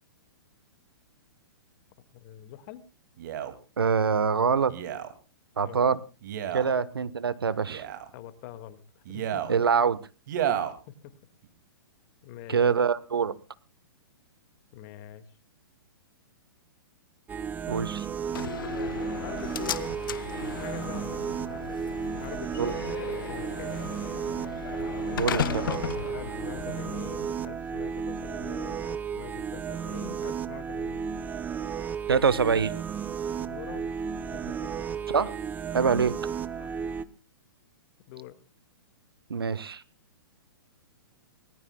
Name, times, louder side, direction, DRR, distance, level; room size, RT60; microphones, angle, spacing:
voice 1, 2.1-2.8 5.6-5.8 6.6-6.7 8.1-9.4 10.5-10.6 10.9-11.1 12.2-12.6 14.7-15.3 19.0-20.0 20.4-22.8 23.2-23.9 25.1-25.2 26.1-31.1 33.4-33.9 34.3-34.7 36.6-36.7 38.0-38.4, left 12 dB, 40° left, 11 dB, 1.9 m, -44 dB
Male speech man speaking, 3.2-3.5 4.7-5.1 6.2-6.7 7.6-8.1 9.0-9.5 10.3-10.7 11.4-11.5, right 10 dB, 55° right, 2.3 m, -31 dB
voice 2, 3.8-4.7 5.6-6.0 6.5-7.8 9.5-10.0 12.5-13.3 17.7-18.1 20.9-21.0 22.6-22.7 25.2-25.8 32.1-32.7 35.1-35.3 35.7-36.1 39.3-39.8, right 6 dB, 85° right, 17 dB, 1.1 m, -24 dB
sound 1, 17.3-37.0, right 7 dB, 15° right, 0.8 m, -34 dB
Slam, 18.3-27.3, left 9 dB, 65° left, 0.9 m, -36 dB
24.0 x 18.5 x 2.2 m, 0.33 s
hypercardioid pair, 120°, 12 cm